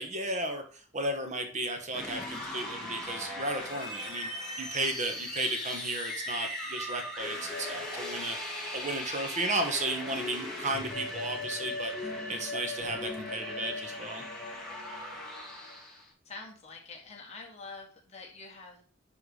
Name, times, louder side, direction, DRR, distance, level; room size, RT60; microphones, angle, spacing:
voice 1, 0.0-4.3 4.6-8.4 8.7-11.9 12.3-14.2, right 2 dB, 35° right, 5 dB, 1.2 m, -34 dB
sound 1, 1.9-16.1, left 1 dB, 5° left, 2.1 m, -38 dB
voice 2, 16.2-18.8, left 3 dB, 35° left, -1 dB, 2.0 m, -46 dB
10.5 x 3.6 x 4.9 m, 0.41 s
head